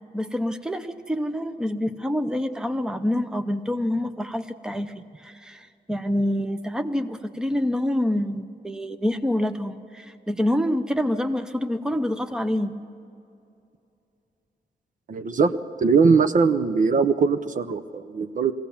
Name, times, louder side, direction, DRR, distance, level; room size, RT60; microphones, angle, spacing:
voice 1, 0.1-12.7, left 1 dB, 5° right, 9 dB, 0.7 m, -27 dB
voice 2, 15.1-18.5, right 5 dB, 50° right, 11 dB, 0.6 m, -21 dB
22.5 x 16.5 x 7.2 m, 2.6 s
wide cardioid pair, 165°, 17 cm